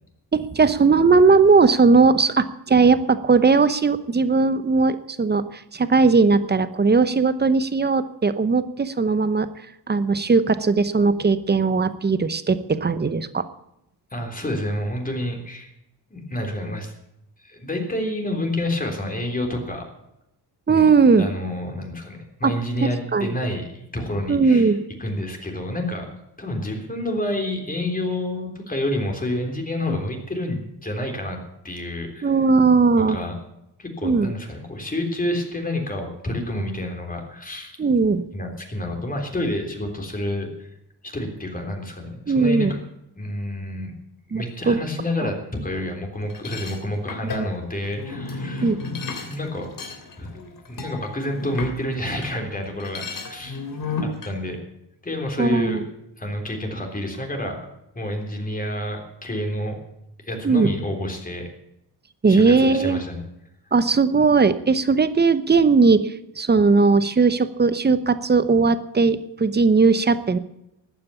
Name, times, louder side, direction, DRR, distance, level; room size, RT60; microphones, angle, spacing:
voice 1, 0.3-9.5 9.9-13.4 20.7-21.3 22.4-22.5 23.1-23.3 24.3-24.8 32.2-33.2 34.0-34.3 37.8-38.2 42.3-42.8 44.3-44.8 47.2-47.5 48.6-48.8 55.4-55.8 60.4-60.7 62.2-63.0 63.7-70.4, right 4 dB, 25° right, 13 dB, 0.9 m, -18 dB
voice 2, 14.1-15.7 16.1-16.9 17.4-19.8 20.7-20.9 21.2-24.7 25.0-26.1 26.4-31.4 31.6-32.3 33.1-33.4 33.8-37.8 38.3-40.7 41.0-42.8 43.2-43.9 44.3-48.7 49.2-49.7 50.2-53.6 54.0-54.6 55.0-55.9 56.2-57.6 58.0-59.8 60.3-61.5 62.3-63.2, left 1 dB, 20° left, 2 dB, 3.5 m, -29 dB
sound 1, 46.3-52.3 52.6-54.3, left 4 dB, 50° left, 3.0 m, -33 dB
14.5 x 9.5 x 8.4 m, 0.84 s
cardioid pair, 110°, 42 cm